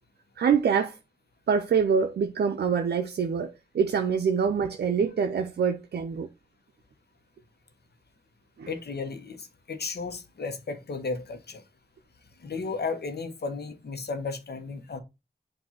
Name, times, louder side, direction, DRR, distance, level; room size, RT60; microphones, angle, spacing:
voice 1, 0.4-0.9 1.5-6.3 8.6-8.7, right 6 dB, 80° right, 0.5 m, -25 dB
voice 2, 8.7-11.6 12.4-15.0, left 4 dB, 75° left, 1.1 m, -34 dB
7.4 x 2.7 x 5.6 m
cardioid pair, 40°, 17 cm